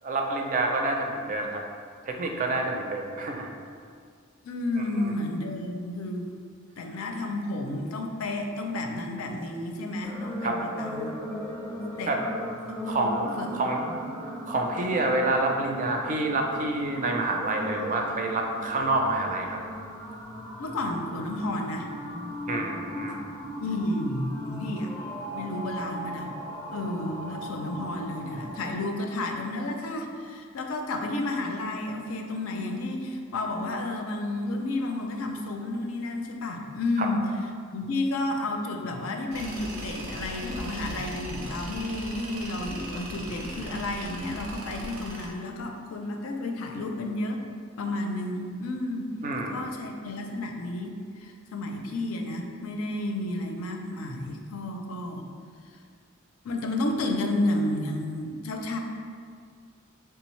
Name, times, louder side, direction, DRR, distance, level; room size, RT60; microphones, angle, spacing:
voice 1, 0.0-1.6 2.0-3.5 5.0-5.1 10.4-10.6 12.1-12.2 12.9-13.8 14.2-19.6 22.5-23.2 37.0-37.1 49.2-49.7, right 2 dB, 40° right, 2 dB, 0.4 m, -28 dB
voice 2, 4.4-6.3 6.8-11.1 12.0-12.2 12.8-13.1 13.4-13.5 13.8-14.0 20.6-21.9 23.6-24.9 25.3-26.3 26.7-37.2 37.7-47.4 47.8-49.1 49.5-55.2 56.4-58.8, left 2 dB, 80° left, 3 dB, 0.4 m, -31 dB
sound 1, 10.0-28.7, equal, 10° left, 0.5 m, -38 dB
Tools, 39.3-45.3, right 1 dB, 80° right, 0.6 m, -39 dB
3.5 x 3.4 x 3.1 m, 2.1 s
head